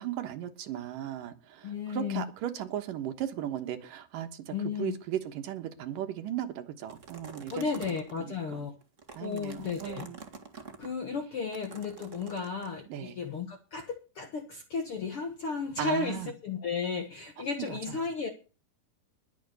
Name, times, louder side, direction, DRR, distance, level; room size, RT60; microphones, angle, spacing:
voice 1, 0.0-7.7 8.2-8.7 9.2-10.2 12.9-13.2 15.8-16.3 17.7-18.0, right 11 dB, 70° right, 2.7 m, -37 dB
voice 2, 1.6-2.2 4.5-4.9 7.5-8.7 9.2-10.1 10.8-18.3, left 5 dB, 55° left, 1.6 m, -34 dB
sound 1, 6.9-8.2 8.8-10.9 11.5-12.7, right 4 dB, 30° right, 1.4 m, -47 dB
20.5 x 7.2 x 6.8 m
omnidirectional pair, 4.3 m